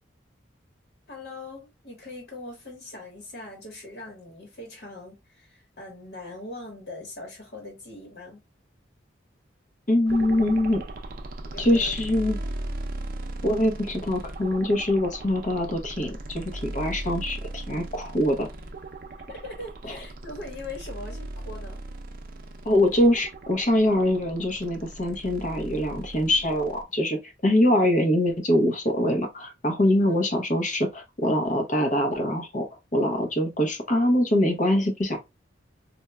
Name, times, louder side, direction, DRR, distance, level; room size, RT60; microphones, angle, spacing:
voice 1, 1.1-8.4 11.5-11.9 19.3-21.8 29.8-30.2, left 2 dB, 60° left, 1.4 m, -41 dB
voice 2, 9.9-10.8 11.6-12.4 13.4-18.5 19.9-20.0 22.6-32.7 32.9-35.2, left 1 dB, 40° left, 0.9 m, -23 dB
sound 1, 10.1-26.8, right 1 dB, 50° right, 0.7 m, -38 dB
4.3 x 2.6 x 2.2 m
head